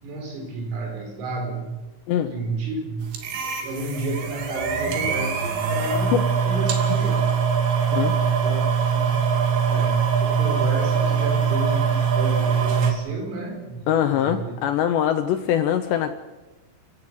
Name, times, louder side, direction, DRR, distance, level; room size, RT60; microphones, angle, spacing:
voice 1, 0.0-1.8 2.3-3.1 3.6-7.3 8.2-8.6 8.9-9.4 9.7-14.5, right 2 dB, 80° right, 3 dB, 7.6 m, -31 dB
sound 1, 3.1-12.9, right 6 dB, 60° right, 4.5 m, -22 dB
voice 2, 13.9-16.1, left 10 dB, 75° left, 8 dB, 2.7 m, -22 dB
27.0 x 15.5 x 9.8 m, 1.2 s
omnidirectional pair, 6.0 m